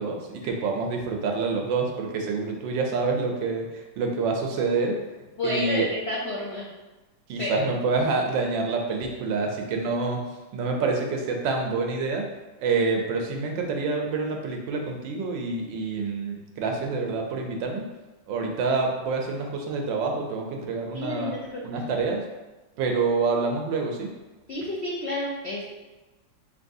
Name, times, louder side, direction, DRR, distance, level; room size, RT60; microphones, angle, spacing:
voice 1, 0.0-5.0 5.4-5.9 7.3-10.2 10.5-12.2 12.6-17.9 18.3-21.3 21.6-22.2 22.8-24.1, right 4 dB, 75° right, 2 dB, 1.3 m, -27 dB
voice 2, 5.4-6.7 7.4-7.6 20.9-21.6 24.5-25.6, left 1 dB, 85° left, -5 dB, 0.5 m, -30 dB
5.3 x 2.8 x 2.6 m, 1.1 s
omnidirectional pair, 2.1 m